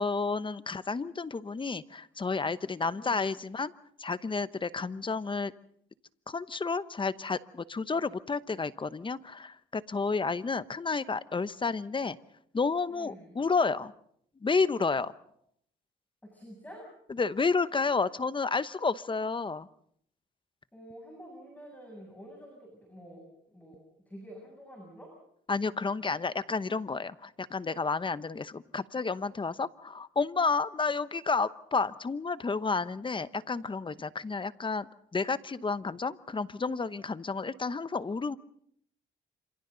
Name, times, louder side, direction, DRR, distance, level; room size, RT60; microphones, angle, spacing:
voice 1, 0.0-3.7 4.0-5.5 6.3-12.2 12.5-13.9 14.4-15.1 17.1-19.7 25.5-38.4, left 4 dB, 25° left, 15 dB, 0.9 m, -31 dB
voice 2, 2.8-3.2 12.9-13.3 16.2-16.9 20.7-23.8 24.1-25.1, equal, 10° left, 0 dB, 7.7 m, -48 dB
28.0 x 27.0 x 4.0 m, 0.67 s
cardioid pair, 90°, 20 cm